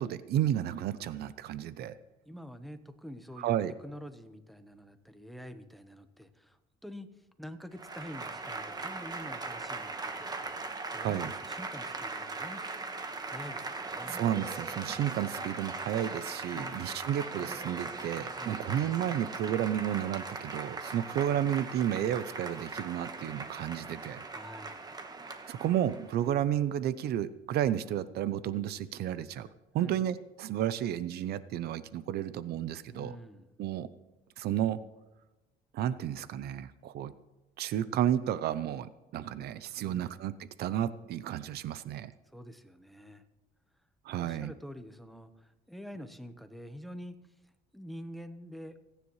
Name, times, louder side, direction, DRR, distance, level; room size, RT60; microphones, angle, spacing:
voice 1, 0.0-1.9 3.4-3.7 11.0-11.3 14.1-24.2 25.5-29.5 29.7-33.1 33.6-33.9 34.4-34.8 35.7-37.1 37.6-40.3 40.6-42.1 44.0-44.5, right 11 dB, 70° right, 15 dB, 0.7 m, -32 dB
voice 2, 2.2-3.6 3.8-10.6 10.8-12.7 13.2-14.2 16.5-17.0 18.3-18.9 24.3-24.9 29.8-30.0 32.9-33.5 39.8-40.3 42.2-43.3 44.2-48.8, equal, ahead, 9 dB, 1.1 m, -47 dB
Applause / Crowd, 7.7-26.3, right 3 dB, 25° right, 1.4 m, -40 dB
29.5 x 10.0 x 3.2 m, 1.0 s
cardioid pair, 110°, 17 cm